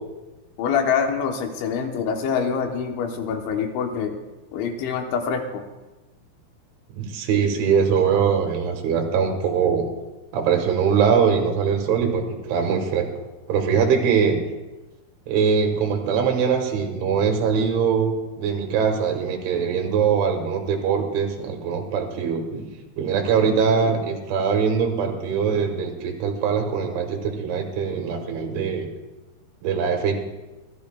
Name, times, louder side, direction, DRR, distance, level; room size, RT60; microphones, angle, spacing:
voice 1, 0.6-4.2 4.5-5.6, left 6 dB, 80° left, 4 dB, 3.2 m, -25 dB
voice 2, 6.9-9.9 10.3-13.1 13.5-14.4 15.3-22.7 23.0-28.9 29.6-30.3, right 6 dB, 80° right, 3 dB, 3.9 m, -22 dB
25.0 x 13.5 x 2.3 m, 1.1 s
omnidirectional pair, 5.5 m